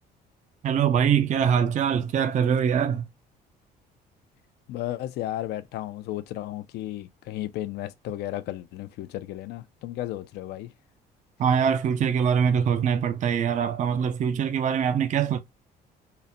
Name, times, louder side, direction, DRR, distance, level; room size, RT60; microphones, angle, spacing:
voice 1, 0.6-3.0 11.4-15.4, right 7 dB, 45° right, 0.5 m, -23 dB
voice 2, 4.7-10.7, left 14 dB, 75° left, 0.5 m, -34 dB
3.9 x 2.1 x 4.1 m
cardioid pair, 110°, 17 cm